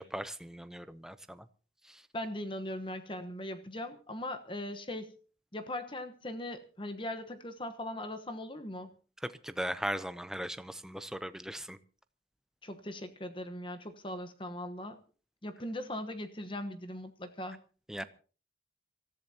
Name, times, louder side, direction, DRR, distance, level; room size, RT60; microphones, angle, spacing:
voice 1, 0.0-1.5 1.8-2.1 9.2-11.8 17.9-18.0, equal, 5° right, 12 dB, 0.6 m, -38 dB
voice 2, 2.1-5.1 5.5-8.9 12.6-15.0 15.4-17.6, left 1 dB, 25° left, 8 dB, 1.1 m, -39 dB
26.5 x 14.0 x 2.9 m, 0.38 s
head